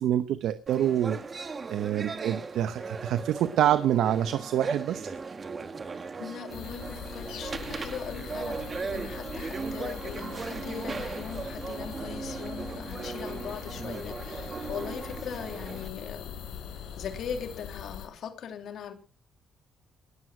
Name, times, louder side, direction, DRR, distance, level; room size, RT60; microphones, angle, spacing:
voice 1, 0.0-5.1, right 11 dB, 80° right, 12 dB, 0.9 m, -27 dB
sound 1, 0.7-15.9, right 4 dB, 35° right, 1.5 m, -37 dB
voice 2, 6.2-16.4 17.0-18.9, left 7 dB, 70° left, 6 dB, 3.0 m, -40 dB
sound 2, 6.5-18.1, left 8 dB, 85° left, 4.4 m, -41 dB
19.5 x 7.9 x 6.1 m, 0.38 s
cardioid pair, 90°, 0 cm